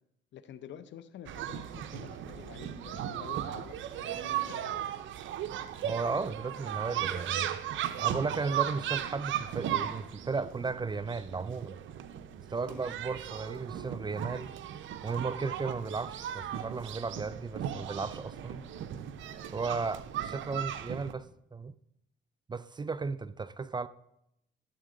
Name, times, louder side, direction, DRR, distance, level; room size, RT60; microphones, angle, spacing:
voice 1, 0.3-4.8 12.7-12.9, left 9 dB, 70° left, 0.7 m, -49 dB
sound 1, 1.3-21.1, right 10 dB, 75° right, 0.7 m, -37 dB
voice 2, 5.8-7.6 8.0-11.8 12.5-14.6 15.0-18.6 19.5-21.7 22.5-23.9, right 4 dB, 20° right, 0.3 m, -35 dB
13.0 x 7.3 x 3.9 m
cardioid pair, 90°, 20 cm